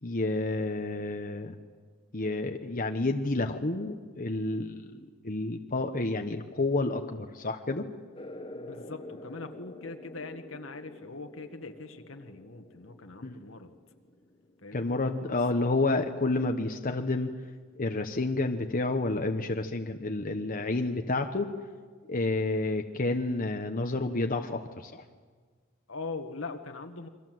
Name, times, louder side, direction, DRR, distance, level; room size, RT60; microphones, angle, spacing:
voice 1, 0.0-1.6 2.1-7.8 13.2-13.4 14.7-17.3 17.7-21.5 22.1-25.0, left 2 dB, 45° left, 5 dB, 1.1 m, -30 dB
sound 1, 8.1-15.3, left 1 dB, 25° left, 1.4 m, -48 dB
voice 2, 8.5-13.7 14.6-15.4 20.6-21.0 25.9-27.1, left 3 dB, 70° left, 7 dB, 1.8 m, -42 dB
29.0 x 23.5 x 7.9 m, 1.5 s
head